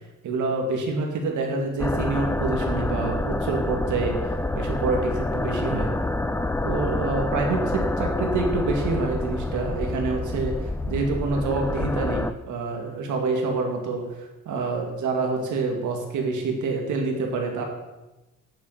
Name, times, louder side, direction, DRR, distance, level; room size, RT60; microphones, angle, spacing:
voice 1, 0.2-5.9 6.6-17.6, right 3 dB, 75° right, 2 dB, 2.4 m, -27 dB
sound 1, 1.8-12.3, left 2 dB, 10° left, 0.5 m, -27 dB
9.4 x 8.7 x 5.1 m, 1.1 s
cardioid pair, 90°, 30 cm